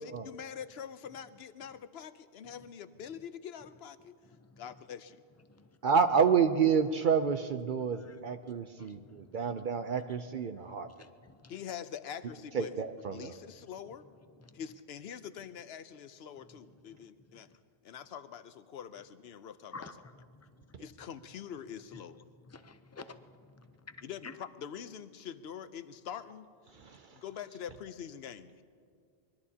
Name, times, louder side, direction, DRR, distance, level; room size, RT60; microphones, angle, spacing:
voice 1, 0.0-4.2 4.6-5.2 11.5-12.8 13.1-14.0 14.5-17.5 17.8-19.9 20.8-22.2 24.0-26.5 27.1-28.6, left 8 dB, 85° left, 12 dB, 0.9 m, -44 dB
voice 2, 4.2-4.6 5.4-5.7 7.8-9.6 10.1-10.2 10.5-11.6 13.2-13.3 13.9-14.6 16.4-17.6 19.7-20.9 21.9-22.0 22.4-24.3, left 4 dB, 20° left, 9 dB, 0.5 m, -53 dB
voice 3, 5.8-10.9 12.5-13.3 26.8-27.1, right 6 dB, 60° right, 9 dB, 0.7 m, -29 dB
24.5 x 21.0 x 2.8 m, 2.2 s
omnidirectional pair, 1.0 m